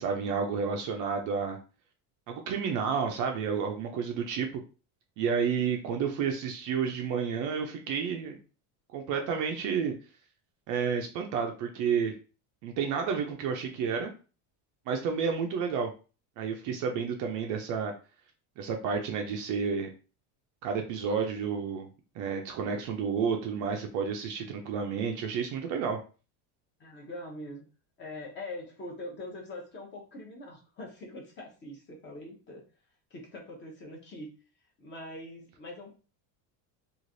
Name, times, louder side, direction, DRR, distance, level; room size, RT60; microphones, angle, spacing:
voice 1, 0.0-1.6 2.3-4.6 5.2-8.4 8.9-9.9 10.7-12.1 12.6-14.1 14.9-15.9 16.4-17.9 18.6-19.9 20.6-21.9 22.2-26.0, right 6 dB, 45° right, 3 dB, 0.4 m, -30 dB
voice 2, 26.8-27.7 28.0-32.6 33.1-34.3 34.8-35.9, left 1 dB, 25° left, -1 dB, 0.7 m, -43 dB
3.2 x 2.4 x 2.5 m, 0.35 s
cardioid pair, 160°, 45 cm